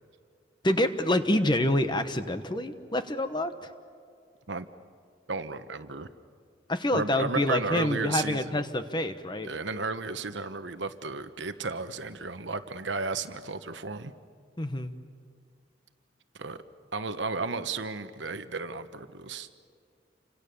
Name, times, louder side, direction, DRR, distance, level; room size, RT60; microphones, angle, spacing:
voice 1, 0.6-3.7 6.7-9.5 14.6-14.9, left 1 dB, 25° left, 9 dB, 1.2 m, -27 dB
voice 2, 5.3-6.1 6.9-8.6 9.4-14.1 16.4-16.6 16.9-19.5, right 4 dB, 80° right, 10 dB, 1.1 m, -33 dB
29.5 x 25.5 x 6.9 m, 2.3 s
head